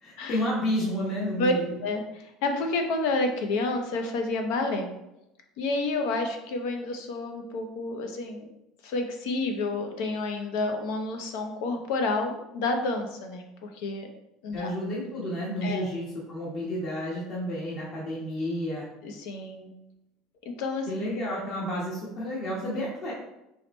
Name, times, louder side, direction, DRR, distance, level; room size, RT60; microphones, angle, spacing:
voice 1, 0.0-1.6 14.5-18.9 20.9-23.1, equal, 50° left, -5 dB, 1.3 m, -31 dB
voice 2, 1.8-4.9 5.6-8.5 8.8-14.1 14.4-14.7 15.6-15.9 19.0-19.7 20.4-20.9, left 3 dB, 75° left, 4 dB, 0.7 m, -29 dB
4.8 x 3.1 x 3.1 m, 0.88 s
supercardioid pair, 115°, 0 cm